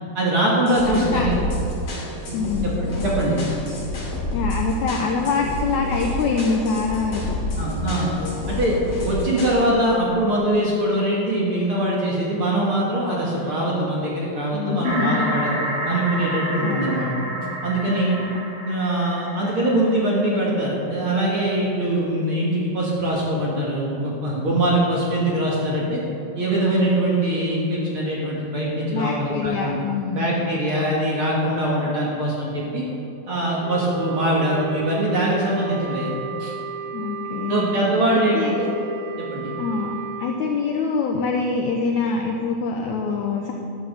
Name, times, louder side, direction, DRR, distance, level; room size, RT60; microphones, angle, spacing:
voice 1, 0.1-1.4 2.3-2.4 2.8-3.4 7.5-8.1 8.5-8.8 9.0-17.1 17.6-18.1 18.6-26.0 26.4-29.8 30.1-32.8 33.3-36.1 36.4-36.5 37.5-38.7 39.3-39.5, right 1 dB, 50° right, -5 dB, 1.8 m, -22 dB
sound 1, 0.7-9.6, left 1 dB, 45° left, 3.3 m, -29 dB
voice 2, 0.9-1.3 2.3-2.7 4.3-7.4 14.5-15.3 16.6-17.0 17.9-18.3 28.9-30.3 36.9-37.7 38.3-38.5 39.6-39.9 40.2-43.5, left 4 dB, 80° left, 1 dB, 1.6 m, -25 dB
sound 2, 14.8-20.5, equal, 65° right, 4.3 m, -30 dB
Wind instrument woodwind instrument, 33.6-40.3, right 5 dB, 90° right, 2.7 m, -33 dB
11.5 x 7.6 x 6.6 m, 2.8 s
omnidirectional pair, 4.3 m